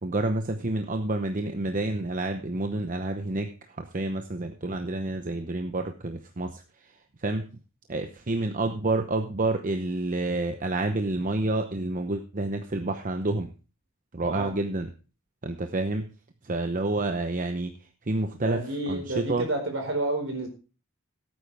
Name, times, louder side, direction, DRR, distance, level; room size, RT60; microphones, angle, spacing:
voice 1, 0.0-6.6 7.2-7.5 7.9-13.5 14.1-14.9 15.4-16.1 16.4-17.7 18.1-18.6 18.9-19.5, right 2 dB, 40° right, 6 dB, 0.9 m, -29 dB
voice 2, 18.4-20.5, right 2 dB, 65° right, 3 dB, 4.5 m, -30 dB
16.0 x 9.0 x 3.4 m, 0.34 s
head